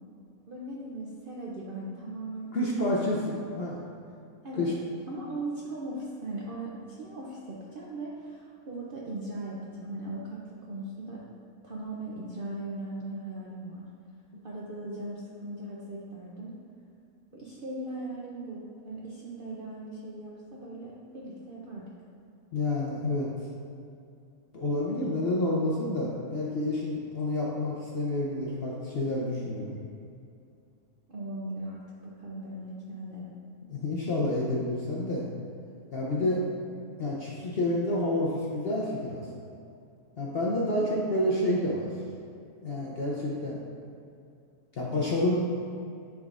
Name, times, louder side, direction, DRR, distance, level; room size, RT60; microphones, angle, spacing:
voice 1, 0.5-2.5 2.8-2.9 3.4-3.5 4.4-4.7 5.1-11.2 11.6-13.9 14.4-16.6 17.3-21.9 31.1-33.3 36.1-36.2 40.8-40.9, right 2 dB, 60° right, -5 dB, 0.5 m, -39 dB
voice 2, 2.5-3.8 4.6-4.7 14.3-14.4 22.5-23.3 24.5-29.8 33.7-35.2 35.9-36.4 37.0-39.3 40.2-41.9 42.6-43.6 44.7-45.4, left 1 dB, 55° left, -4 dB, 0.7 m, -29 dB
10.5 x 3.7 x 2.5 m, 2.5 s
omnidirectional pair, 1.7 m